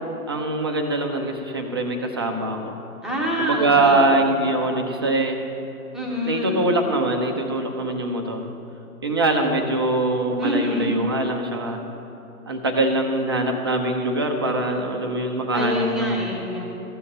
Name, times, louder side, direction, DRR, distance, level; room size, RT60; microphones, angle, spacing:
voice 1, 0.3-2.8 3.4-5.4 6.2-8.5 9.0-11.8 12.5-16.3, right 2 dB, 20° right, 2 dB, 0.4 m, -23 dB
voice 2, 3.0-4.1 5.9-6.7 10.4-11.0 15.5-16.7, equal, ahead, -5 dB, 1.0 m, -26 dB
14.0 x 7.0 x 5.5 m, 2.9 s
figure-of-eight pair, 125°, 45 cm